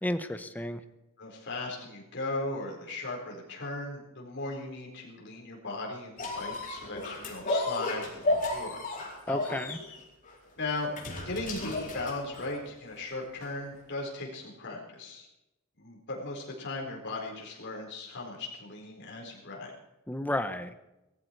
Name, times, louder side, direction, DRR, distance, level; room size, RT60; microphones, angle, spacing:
voice 1, 0.0-0.8 9.3-9.8 20.1-20.7, left 1 dB, 10° left, 10 dB, 0.8 m, -32 dB
voice 2, 1.2-8.8 9.3-9.6 10.6-15.3 15.8-19.7, left 2 dB, 55° left, -1 dB, 4.5 m, -37 dB
sound 1, 6.2-12.7 13.4-13.5, left 2 dB, 40° left, 4.4 m, -33 dB
19.0 x 15.0 x 4.6 m, 0.95 s
head